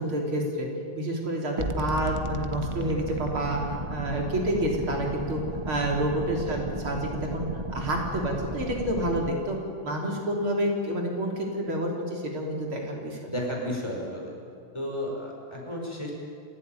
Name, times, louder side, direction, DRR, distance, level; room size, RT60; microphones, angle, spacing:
voice 1, 0.0-5.4 5.7-9.6 9.8-13.3, right 1 dB, 70° right, 0 dB, 4.3 m, -29 dB
sound 1, 1.6-9.3, right 1 dB, 35° right, 0.4 m, -34 dB
voice 2, 13.3-14.3 14.7-16.1, equal, 10° left, -1 dB, 5.4 m, -33 dB
29.0 x 15.5 x 9.2 m, 2.3 s
omnidirectional pair, 2.4 m